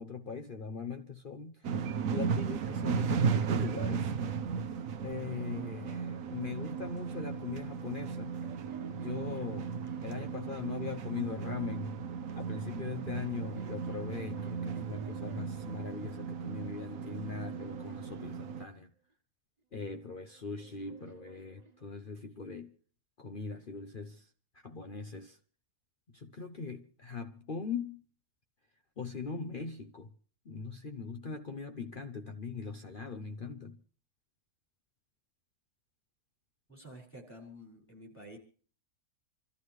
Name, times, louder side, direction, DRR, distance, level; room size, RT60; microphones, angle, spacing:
voice 1, 0.0-1.8 2.1-4.1 5.0-8.3 8.9-9.7 10.0-12.0 12.3-18.9 19.7-22.7 23.2-24.3 24.6-25.4 26.1-28.0 29.0-30.1 30.4-33.8, left 5 dB, 45° left, 0.9 m, -41 dB
sound 1, 1.6-18.6, right 6 dB, 70° right, 1.3 m, -35 dB
sound 2, 8.0-11.4 12.4-15.8 16.4-18.8 19.9-22.3, right 6 dB, 30° right, 1.1 m, -53 dB
voice 2, 36.7-38.4, equal, 10° left, 5.7 m, -50 dB
27.5 x 14.0 x 3.2 m
omnidirectional pair, 1.5 m